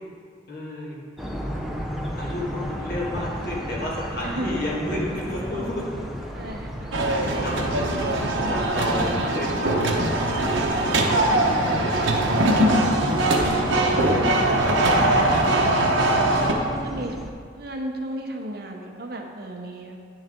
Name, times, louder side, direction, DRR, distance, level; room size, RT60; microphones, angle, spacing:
voice 1, 0.5-1.0 2.2-6.0 7.4-8.0 8.5-10.0 10.4-10.6 11.1-11.5 13.9-14.2, left 1 dB, 50° left, -4 dB, 1.8 m, -31 dB
sound 1, 1.2-17.3, equal, ahead, 0.6 m, -35 dB
voice 2, 6.3-6.9 12.2-12.8 14.0-15.0 15.3-15.7 16.2-17.2 17.6-20.0, right 1 dB, 50° right, 2 dB, 0.8 m, -34 dB
sound 2, 6.9-16.5, right 1 dB, 75° right, 0.9 m, -21 dB
10.0 x 6.2 x 3.7 m, 2.1 s
head